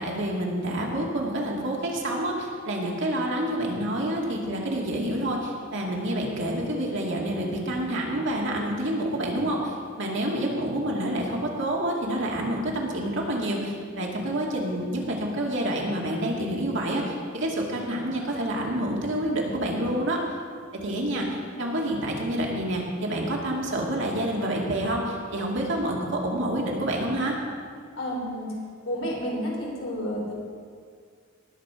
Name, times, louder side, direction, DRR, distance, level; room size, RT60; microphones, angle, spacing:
voice 1, 0.0-20.2 20.8-27.4, right 1 dB, 65° right, -1 dB, 2.3 m, -28 dB
voice 2, 27.9-28.5 28.8-30.3, equal, 80° left, -2 dB, 3.4 m, -31 dB
19.0 x 7.5 x 5.0 m, 2.1 s
head